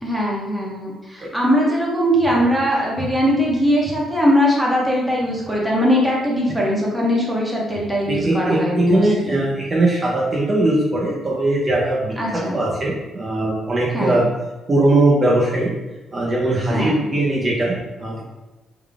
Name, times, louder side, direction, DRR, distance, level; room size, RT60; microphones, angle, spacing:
voice 1, 0.0-9.4 12.2-12.6 13.9-14.2 16.7-17.0, equal, 5° right, -4 dB, 1.1 m, -20 dB
voice 2, 8.1-12.1 12.5-14.2 14.7-15.7 16.1-18.2, right 2 dB, 30° right, -4 dB, 0.7 m, -20 dB
3.7 x 2.3 x 3.6 m, 1.1 s
cardioid pair, 90°, 0 cm